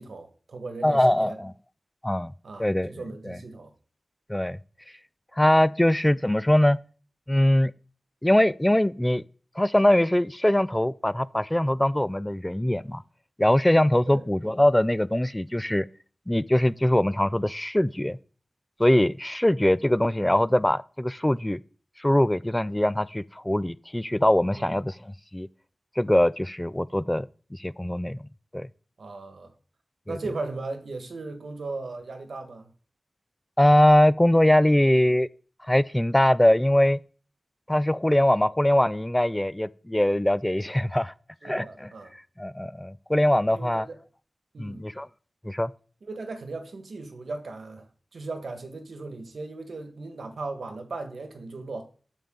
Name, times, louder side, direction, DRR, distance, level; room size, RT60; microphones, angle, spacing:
voice 1, 0.0-1.4 2.4-3.7 14.1-14.3 24.6-24.7 29.0-29.5 30.1-32.7 41.4-42.1 43.5-44.0 44.5-44.8 46.0-47.9 48.1-51.8, right 3 dB, 85° right, 1.6 m, -37 dB
voice 2, 0.8-1.5 2.0-2.3 2.6-2.9 3.3-3.4 4.3-4.6 5.4-6.8 7.3-7.7 8.2-9.2 9.6-13.0 13.4-15.9 16.3-18.2 18.8-21.6 22.0-24.9 25.3-25.5 26.0-27.3 27.5-28.2 28.5-28.7 30.1-30.2 33.6-35.3 35.7-37.0 37.7-41.1 41.4-41.9 42.4-43.9 44.6-45.1 45.4-45.7, left 1 dB, 10° left, 0.3 m, -22 dB
9.0 x 7.0 x 3.8 m
wide cardioid pair, 75°, 0 cm